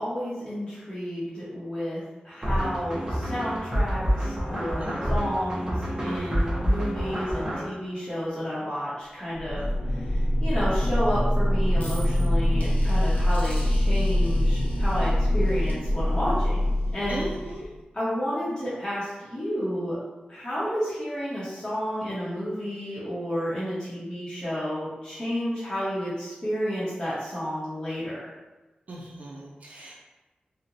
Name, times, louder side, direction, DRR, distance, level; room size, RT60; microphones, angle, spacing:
voice 1, 0.0-9.7 9.9-16.6 16.9-17.2 17.9-20.0 20.3-28.1, equal, 30° left, -11 dB, 0.8 m, -31 dB
sound 1, 2.4-7.6, equal, 25° right, 0.7 m, -27 dB
sound 2, 9.3-17.8, left 1 dB, 60° left, 0.7 m, -24 dB
voice 2, 17.1-17.6 28.9-29.9, right 2 dB, 60° right, -2 dB, 0.4 m, -38 dB
2.8 x 2.1 x 2.5 m, 1.1 s
wide cardioid pair, 100°, 3 cm